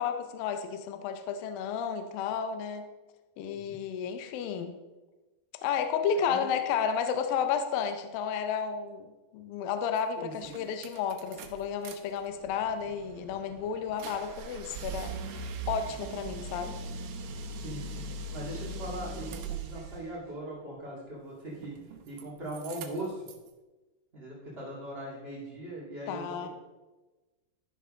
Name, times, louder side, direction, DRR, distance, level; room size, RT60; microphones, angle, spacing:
voice 1, 0.0-2.8 3.4-4.7 5.6-9.1 9.3-15.1 15.7-16.7 26.1-26.5, left 7 dB, 80° left, 8 dB, 2.0 m, -32 dB
sound 1, 10.0-10.1 10.4-12.0 12.3-20.0 21.5-22.2 22.5-23.5, right 3 dB, 80° right, 2.8 m, -40 dB
voice 2, 10.2-10.6 17.6-21.7 22.0-23.3 24.1-26.5, right 1 dB, 35° right, -6 dB, 0.9 m, -40 dB
13.5 x 5.7 x 3.7 m, 1.2 s
omnidirectional pair, 4.9 m